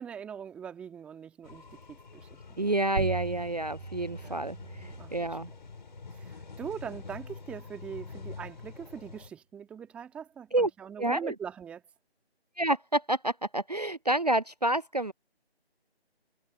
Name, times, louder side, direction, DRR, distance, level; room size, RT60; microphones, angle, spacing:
voice 1, 0.0-2.4 2.7-2.8 4.2-4.4 5.0-5.6 6.2-11.8, right 8 dB, 5° right, 1.8 m, -42 dB
sound 1, 1.4-9.3, left 4 dB, 45° left, 5.0 m, -46 dB
voice 2, 2.6-5.5 10.5-10.7 11.0-11.3 12.6-15.1, right 1 dB, 40° right, 0.4 m, -29 dB
sound 2, 3.0-8.0, right 4 dB, 70° right, 1.1 m, -40 dB
figure-of-eight pair, 155°, 32 cm